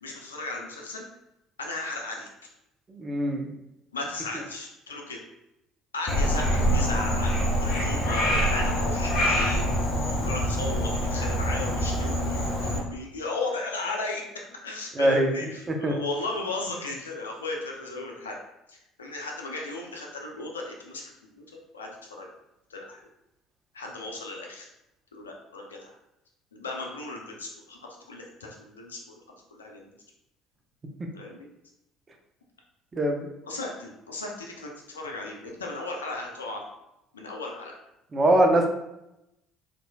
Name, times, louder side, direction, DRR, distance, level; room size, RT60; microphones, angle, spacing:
voice 1, 0.0-1.1 1.6-2.5 3.9-5.2 5.9-18.4 18.7-21.0 21.3-22.3 22.7-23.0 23.7-24.7 25.1-25.9 26.5-29.0 29.5-29.9 31.1-31.5 33.5-36.6 37.1-37.7, left 2 dB, 90° left, 0 dB, 0.5 m, -36 dB
voice 2, 2.9-3.5 15.0-15.3 15.7-15.9 32.9-33.3 38.1-38.7, right 1 dB, 30° right, 2 dB, 0.7 m, -22 dB
Frog, 6.1-12.8, equal, 60° left, 0.9 m, -25 dB
4.2 x 2.6 x 2.2 m, 0.87 s
hypercardioid pair, 60°, 0 cm